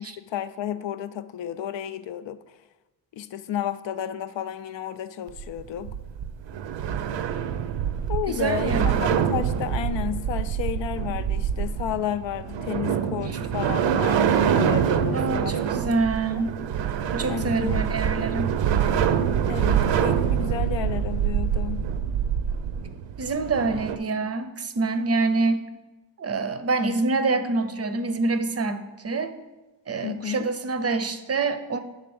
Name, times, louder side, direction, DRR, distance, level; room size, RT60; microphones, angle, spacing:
voice 1, 0.0-2.4 3.1-5.9 8.1-15.6 15.9-16.0 16.3-16.5 17.3-18.4 19.5-21.8 30.0-30.5, left 10 dB, 80° left, 13 dB, 0.5 m, -32 dB
sound 1, 5.3-24.0, right 8 dB, 80° right, 0.6 m, -25 dB
voice 2, 8.3-8.8 15.1-16.5 17.1-18.6 23.2-25.7 26.2-29.3 29.9-31.8, right 3 dB, 35° right, 10 dB, 0.5 m, -26 dB
9.4 x 3.7 x 6.9 m, 1.1 s
wide cardioid pair, 175°, 43 cm